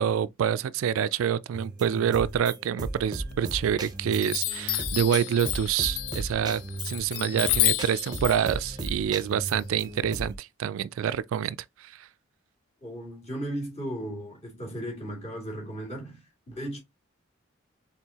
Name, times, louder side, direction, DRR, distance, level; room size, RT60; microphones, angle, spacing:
voice 1, 0.0-12.1, right 8 dB, 80° right, 0.3 m, -27 dB
sound 1, 1.5-10.4, right 2 dB, 20° right, 0.6 m, -37 dB
Chime, 3.2-3.8 4.2-10.1, left 18 dB, 80° left, 0.3 m, -31 dB
voice 2, 12.8-16.8, right 1 dB, 30° left, 2.3 m, -36 dB
4.5 x 3.6 x 2.8 m
head